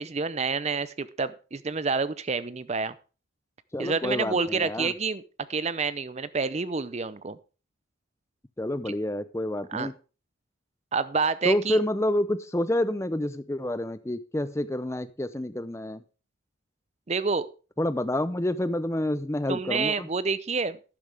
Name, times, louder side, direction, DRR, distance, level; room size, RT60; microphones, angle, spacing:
voice 1, 0.0-2.9 3.8-5.2 5.5-7.4 9.7-9.9 10.9-11.8 17.1-17.5 19.5-20.8, right 4 dB, 30° right, 16 dB, 0.5 m, -28 dB
voice 2, 3.7-4.9 8.6-9.9 11.4-16.0 17.8-20.1, left 1 dB, 15° left, 13 dB, 0.6 m, -28 dB
12.0 x 9.9 x 3.4 m, 0.34 s
head